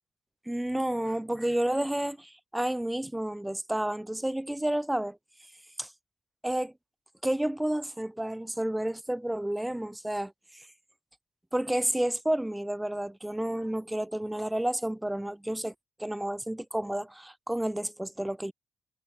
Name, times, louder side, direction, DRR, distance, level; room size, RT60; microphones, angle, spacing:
voice 1, 0.5-5.2 5.8-5.9 6.4-6.7 7.2-10.7 11.5-15.7 16.0-18.5, right 1 dB, 5° right, 1.4 m, -30 dB
cardioid pair, 90°, 0 cm